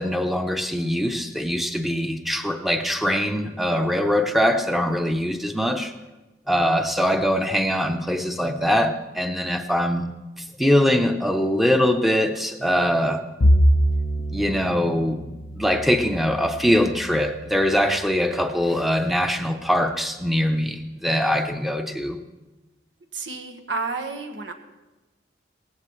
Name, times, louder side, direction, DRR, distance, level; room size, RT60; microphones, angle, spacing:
voice 1, 0.0-5.9 6.5-10.1 10.6-13.2 14.3-22.2, equal, ahead, 6 dB, 0.7 m, -22 dB
Bowed string instrument, 13.4-17.8, equal, 80° left, 0.9 m, -24 dB
voice 2, 23.1-24.5, right 3 dB, 85° right, 4 dB, 1.5 m, -30 dB
18.0 x 15.5 x 3.2 m, 1.1 s
head